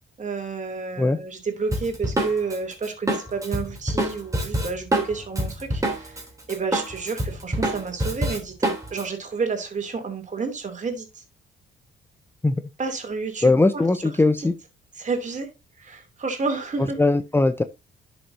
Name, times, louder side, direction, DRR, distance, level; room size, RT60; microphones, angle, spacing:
voice 1, 0.2-6.2 6.5-11.2 12.8-13.8 15.0-15.5 15.8-17.0, right 4 dB, 40° right, 2.8 m, -30 dB
Drum kit, 1.7-6.2 6.5-9.0, right 1 dB, 15° right, 3.1 m, -26 dB
voice 2, 13.4-14.5 17.0-17.6, left 2 dB, 10° left, 0.6 m, -19 dB
11.0 x 6.2 x 2.7 m
cardioid pair, 90°, 20 cm